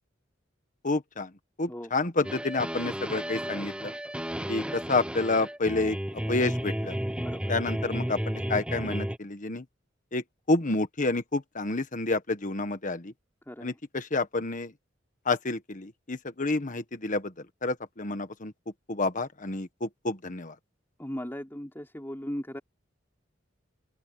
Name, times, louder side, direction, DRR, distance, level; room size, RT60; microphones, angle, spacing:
voice 1, 0.8-1.3 1.6-3.9 4.5-6.0 6.3-7.0 7.5-9.6 10.1-13.1 13.6-14.7 15.2-17.3 17.6-18.5 18.9-20.5, left 3 dB, 40° left, 1.5 m, -29 dB
sound 1, 2.2-9.2, equal, 5° right, 0.9 m, -33 dB
voice 2, 7.2-7.5 13.5-13.8 21.0-22.6, equal, 10° left, 4.4 m, -37 dB
open air
head